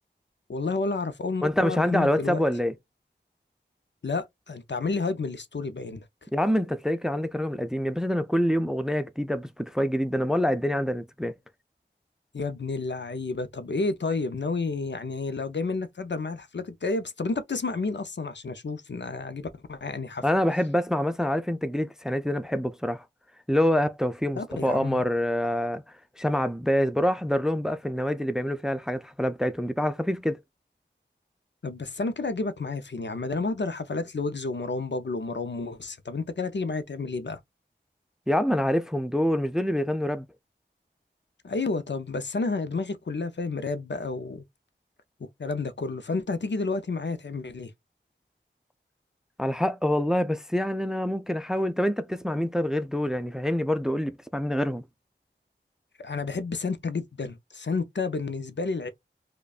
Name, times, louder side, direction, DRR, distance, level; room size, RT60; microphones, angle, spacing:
voice 1, 0.5-2.4 4.0-6.0 12.3-20.2 24.4-25.0 31.6-37.4 41.4-44.4 45.4-47.7 56.0-58.9, left 3 dB, 65° left, 0.5 m, -30 dB
voice 2, 1.4-2.7 6.3-11.3 20.2-23.0 23.5-25.8 26.2-30.4 38.3-40.3 49.4-54.8, equal, 5° right, 0.4 m, -26 dB
4.9 x 2.2 x 2.4 m
wide cardioid pair, 40°, 19 cm